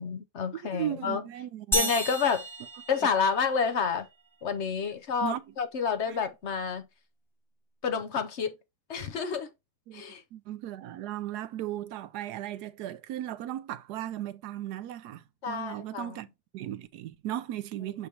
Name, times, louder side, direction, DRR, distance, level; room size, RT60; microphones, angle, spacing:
voice 1, 0.0-1.2 1.7-2.4 2.9-4.1 4.4-6.9 7.8-8.6 8.9-9.5 9.9-10.2 15.4-16.2, left 6 dB, 55° left, 0.8 m, -29 dB
voice 2, 0.7-1.9 5.2-5.4 6.1-6.2 9.9-10.0 10.3-18.1, right 12 dB, 75° right, 1.1 m, -36 dB
sound 1, 1.7-3.6, right 1 dB, ahead, 1.2 m, -31 dB
6.9 x 2.9 x 4.8 m
omnidirectional pair, 1.8 m